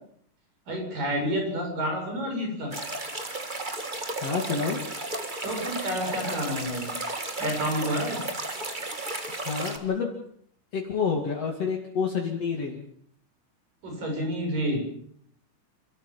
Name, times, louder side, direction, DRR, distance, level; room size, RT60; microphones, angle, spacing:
voice 1, 0.7-2.7 5.4-6.9 7.4-8.2 13.8-14.9, equal, 90° right, 2 dB, 8.8 m, -29 dB
sound 1, 2.7-9.8, right 2 dB, 20° right, 1.6 m, -34 dB
voice 2, 4.2-4.8 9.3-10.1 10.7-12.8, left 5 dB, 50° left, 1 dB, 3.3 m, -28 dB
29.5 x 14.0 x 7.6 m, 0.64 s
omnidirectional pair, 3.7 m